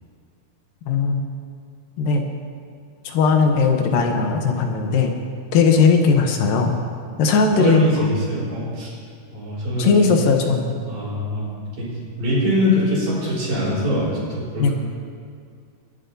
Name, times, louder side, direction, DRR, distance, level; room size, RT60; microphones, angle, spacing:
voice 1, 0.9-1.2 2.0-2.2 3.1-5.1 5.5-6.7 7.2-7.8 9.8-10.8 14.6-14.7, left 5 dB, 80° left, 3 dB, 2.7 m, -18 dB
voice 2, 7.3-9.0 9.3-10.1 10.9-14.7, equal, 65° right, -7 dB, 5.7 m, -23 dB
22.5 x 11.5 x 2.7 m, 2.2 s
omnidirectional pair, 4.0 m